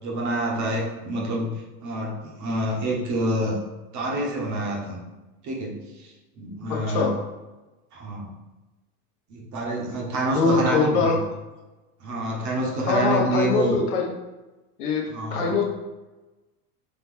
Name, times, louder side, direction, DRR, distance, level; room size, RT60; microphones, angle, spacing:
voice 1, 0.0-1.5 1.8-3.6 3.9-5.0 5.4-6.1 6.4-7.1 7.9-8.3 9.3-11.2 12.0-13.8 15.1-15.5, right 1 dB, 40° right, -1 dB, 1.1 m, -27 dB
voice 2, 6.7-7.2 10.3-11.2 12.9-14.1 14.8-15.6, left 4 dB, 70° left, 0 dB, 1.0 m, -23 dB
3.9 x 3.2 x 3.2 m, 1.1 s
hypercardioid pair, 95°, 46 cm